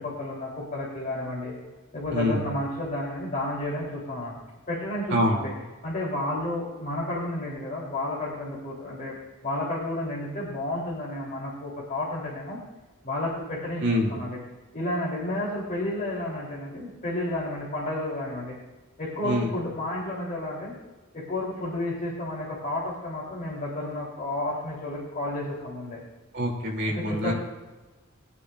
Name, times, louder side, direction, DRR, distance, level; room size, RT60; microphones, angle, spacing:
voice 1, 0.0-1.5 1.9-4.4 4.7-5.5 5.8-9.2 9.4-12.6 13.0-13.8 14.1-14.4 14.7-18.5 19.0-20.7 21.1-26.0 26.9-27.3, left 1 dB, 40° left, -6 dB, 3.3 m, -31 dB
voice 2, 2.1-2.5 5.1-5.4 13.8-14.1 19.2-19.5 26.3-27.3, equal, 60° right, -1 dB, 2.8 m, -25 dB
21.5 x 9.5 x 2.5 m, 1.2 s
head